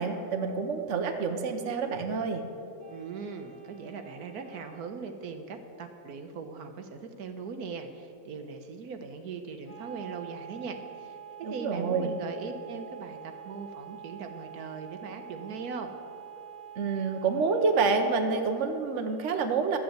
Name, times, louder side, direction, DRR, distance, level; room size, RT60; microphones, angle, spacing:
voice 1, 0.0-2.4 11.4-12.1 16.8-19.8, right 4 dB, 55° right, 5 dB, 1.2 m, -28 dB
sound 1, 2.8-4.8 9.7-17.8, right 9 dB, 25° right, 1.4 m, -46 dB
voice 2, 2.9-15.9, right 5 dB, 80° right, 6 dB, 1.4 m, -40 dB
12.5 x 7.8 x 7.9 m, 2.7 s
omnidirectional pair, 1.6 m